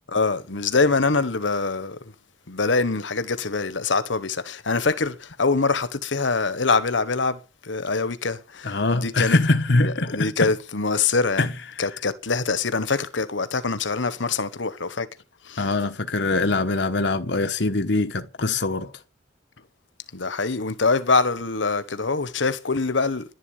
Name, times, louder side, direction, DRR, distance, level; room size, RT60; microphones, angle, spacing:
voice 1, 0.1-2.0 2.5-9.4 9.8-11.5 11.8-15.1 15.4-15.7 20.1-23.2, left 4 dB, 85° left, 1.3 m, -24 dB
voice 2, 8.6-10.5 11.4-11.5 15.6-18.9, left 2 dB, 65° left, 1.2 m, -23 dB
11.5 x 11.0 x 8.3 m
head